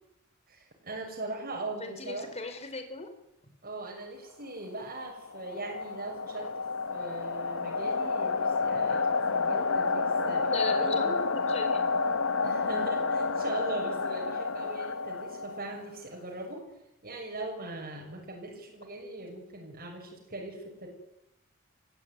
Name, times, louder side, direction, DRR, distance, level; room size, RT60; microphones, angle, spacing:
voice 1, 0.5-2.3 3.6-11.2 12.4-16.6 17.0-20.9, right 2 dB, 45° right, -1 dB, 6.6 m, -40 dB
voice 2, 1.8-3.1 10.5-11.9, left 3 dB, 30° left, 7 dB, 4.8 m, -37 dB
sound 1, 5.0-15.9, left 4 dB, 70° left, 1.1 m, -30 dB
29.5 x 16.0 x 9.7 m, 0.88 s
head